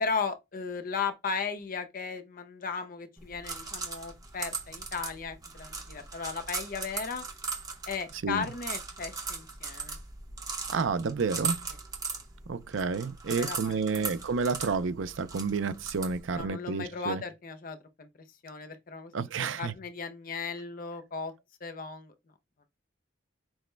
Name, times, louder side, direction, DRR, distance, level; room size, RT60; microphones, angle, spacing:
voice 1, 0.0-7.2 7.9-10.0 13.3-14.1 16.4-18.1 18.4-19.1 19.6-21.3 21.6-22.1, left 5 dB, 45° left, 0.6 m, -36 dB
sound 1, 3.2-16.5, right 5 dB, 20° right, 0.8 m, -39 dB
voice 2, 10.7-11.7 12.5-17.2 19.1-19.7, right 5 dB, 90° right, 0.5 m, -30 dB
6.2 x 2.2 x 3.2 m
head